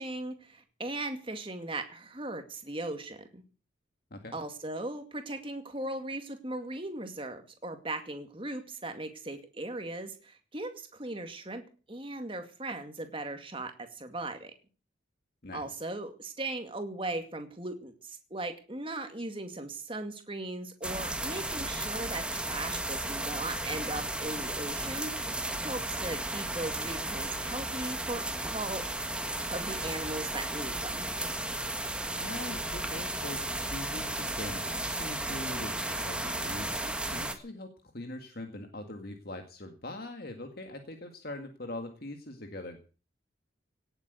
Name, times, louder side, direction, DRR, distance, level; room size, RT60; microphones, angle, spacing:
voice 1, 0.0-3.4 4.3-11.6 11.9-14.5 15.5-25.1 25.6-28.8 29.5-31.1 36.8-36.9, right 2 dB, 25° right, 7 dB, 2.3 m, -38 dB
voice 2, 15.4-15.8 32.2-42.8, left 1 dB, 50° left, 5 dB, 1.9 m, -42 dB
sound 1, 20.8-37.4, right 1 dB, 5° right, 1.6 m, -34 dB
18.0 x 8.0 x 8.1 m, 0.38 s
head